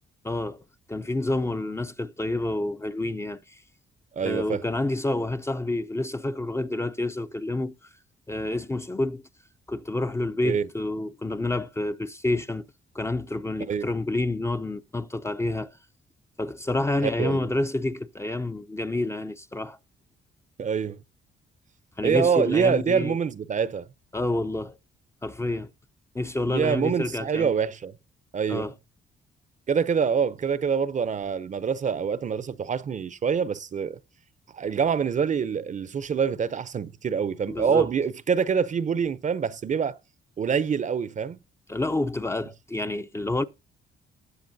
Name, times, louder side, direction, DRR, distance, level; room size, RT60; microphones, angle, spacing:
voice 1, 0.2-3.6 4.2-7.9 8.3-9.2 9.7-12.6 12.9-15.8 16.4-19.8 22.0-23.2 24.1-24.8 25.2-25.7 26.1-27.6 28.5-28.7 37.5-37.9 41.7-43.4, left 2 dB, 15° left, 0.5 m, -28 dB
voice 2, 4.1-4.6 10.4-10.7 13.7-13.9 17.0-17.5 20.6-21.0 22.0-23.9 26.5-27.9 28.3-28.7 29.7-34.0 34.5-40.0 40.4-41.4, right 6 dB, 40° right, 0.6 m, -25 dB
19.5 x 7.0 x 2.7 m
cardioid pair, 90°, 20 cm